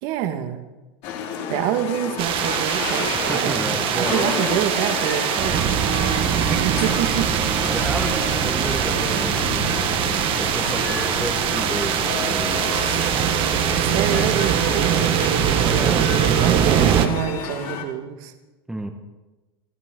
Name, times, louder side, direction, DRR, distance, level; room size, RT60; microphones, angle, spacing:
voice 1, 0.0-0.6 1.5-5.8 6.5-7.3 13.8-15.1 15.7-18.3, right 11 dB, 55° right, 6 dB, 2.0 m, -27 dB
sound 1, 1.0-17.8, left 7 dB, 55° left, 2.9 m, -31 dB
sound 2, 2.2-17.1, right 9 dB, 40° right, 1.6 m, -22 dB
voice 2, 3.3-4.4 6.2-6.6 7.6-12.6 14.1-14.5 14.9-15.2 15.6-16.0 18.7-18.9, right 2 dB, 5° right, 4 dB, 1.6 m, -31 dB
29.5 x 11.0 x 3.9 m, 1.1 s
supercardioid pair, 125°, 13 cm